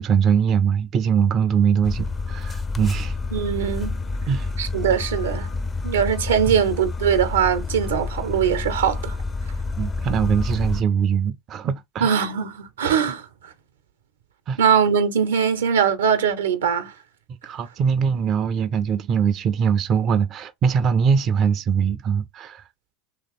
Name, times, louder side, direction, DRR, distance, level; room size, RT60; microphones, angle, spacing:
voice 1, 0.0-3.2 4.3-4.5 6.5-6.6 9.8-12.2 14.5-14.6 17.4-22.7, right 7 dB, 40° right, 0.4 m, -22 dB
sound 1, 1.8-10.8, left 3 dB, 20° left, 0.5 m, -28 dB
voice 2, 3.3-4.0 4.6-5.5 5.8-9.2 12.0-13.3 14.6-16.9, right 7 dB, 80° right, 0.7 m, -21 dB
3.0 x 2.7 x 3.9 m
hypercardioid pair, 90°, 0 cm